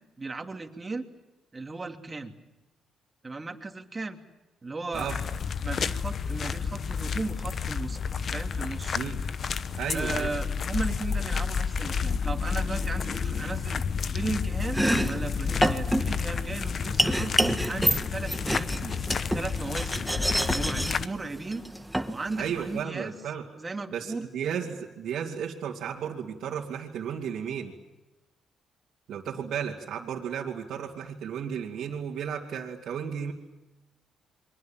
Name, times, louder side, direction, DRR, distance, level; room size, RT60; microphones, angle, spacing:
voice 1, 0.2-1.0 1.5-2.4 3.2-4.2 4.6-5.2 5.6-8.0 8.3-9.0 9.9-19.0 19.3-20.1 20.5-21.6 22.1-23.1 23.6-24.3, right 3 dB, 25° right, 4 dB, 2.9 m, -36 dB
sound 1, 4.9-21.1, left 6 dB, 50° left, 1.0 m, -30 dB
voice 2, 9.8-10.3 22.4-23.5 23.9-27.7 29.1-33.3, right 8 dB, 75° right, -3 dB, 2.8 m, -34 dB
Domestic sounds home sounds, 14.6-22.8, right 1 dB, 5° right, 1.7 m, -29 dB
29.5 x 24.0 x 7.5 m, 1.0 s
cardioid pair, 90°, 0 cm